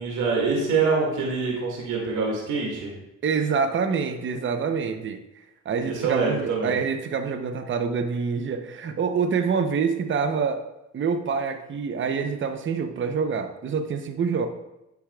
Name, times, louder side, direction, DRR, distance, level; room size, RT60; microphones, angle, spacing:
voice 1, 0.0-2.9 5.8-6.8, right 4 dB, 85° right, -2 dB, 2.1 m, -25 dB
voice 2, 3.2-5.2 5.7-10.6 10.9-14.5, right 5 dB, 40° right, 8 dB, 0.7 m, -26 dB
9.6 x 7.0 x 2.3 m, 0.92 s
cardioid pair, 90°, 30 cm